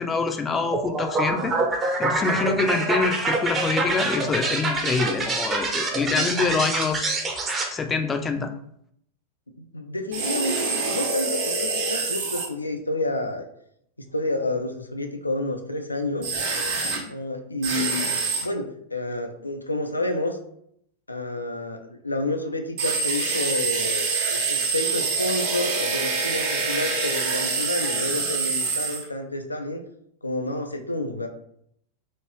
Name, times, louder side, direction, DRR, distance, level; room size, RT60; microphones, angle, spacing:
voice 1, 0.0-1.6 2.0-7.2 7.7-8.5, left 4 dB, 20° left, 6 dB, 0.4 m, -25 dB
sound 1, 0.7-7.7, right 3 dB, 20° right, 0.7 m, -26 dB
voice 2, 9.6-13.5 14.0-16.3 17.1-18.1 18.4-20.4 21.1-29.8 30.2-31.3, left 2 dB, 80° left, 5 dB, 0.4 m, -29 dB
sound 2, 10.1-12.5 16.2-17.0 17.6-18.4 22.8-29.0, right 4 dB, 50° right, 0.9 m, -26 dB
3.0 x 2.5 x 3.2 m, 0.70 s
figure-of-eight pair, 90°, 0 cm